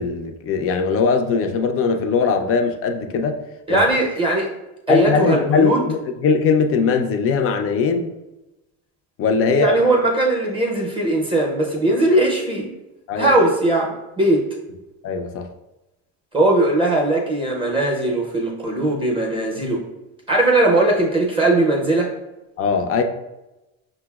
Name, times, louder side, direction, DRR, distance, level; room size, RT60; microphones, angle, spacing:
voice 1, 0.0-3.4 3.7-3.8 4.9-8.1 9.2-9.8 13.1-13.3 15.0-15.5 22.6-23.0, left 5 dB, 40° left, 5 dB, 0.4 m, -20 dB
voice 2, 3.7-4.5 4.9-5.8 9.5-12.7 13.2-14.5 16.3-19.8 20.3-22.1, right 2 dB, 15° right, -3 dB, 0.6 m, -19 dB
5.2 x 2.0 x 2.2 m, 0.98 s
supercardioid pair, 105°, 37 cm